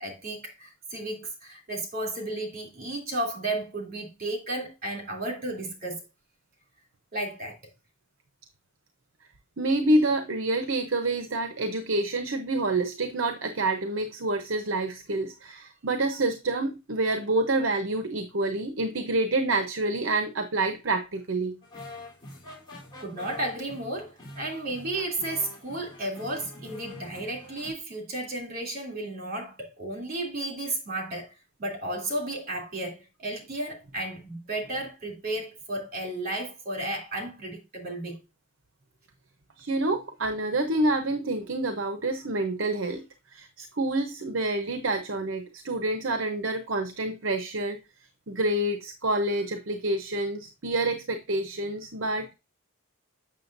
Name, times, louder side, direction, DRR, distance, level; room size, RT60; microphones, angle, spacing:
voice 1, 0.0-6.0 7.1-7.6 23.0-31.3 31.6-38.2, right 1 dB, 45° right, 2.8 m, -33 dB
voice 2, 9.6-21.5 39.6-47.8 48.3-52.3, right 2 dB, 60° right, 0.8 m, -27 dB
sound 1, 21.6-27.7, left 2 dB, 20° left, 3.4 m, -45 dB
7.6 x 6.6 x 2.6 m
head